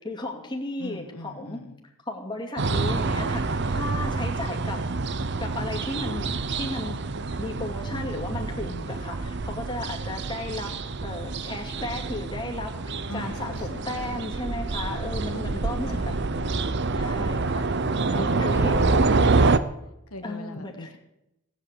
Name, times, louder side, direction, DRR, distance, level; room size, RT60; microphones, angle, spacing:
voice 1, 0.0-1.6 2.1-4.8 5.4-6.3 6.5-7.0 7.4-10.7 11.0-16.0 16.9-17.7 18.0-19.2 20.2-20.9, left 2 dB, 20° left, 0 dB, 2.4 m, -34 dB
voice 2, 0.8-1.8 3.9-4.1 7.9-8.9 13.1-14.3 15.3-16.5 18.1-19.6 20.1-21.0, left 1 dB, 85° left, 6 dB, 1.6 m, -40 dB
sound 1, 2.6-19.6, right 3 dB, 50° right, 0.8 m, -27 dB
18.0 x 8.3 x 8.4 m, 0.88 s
head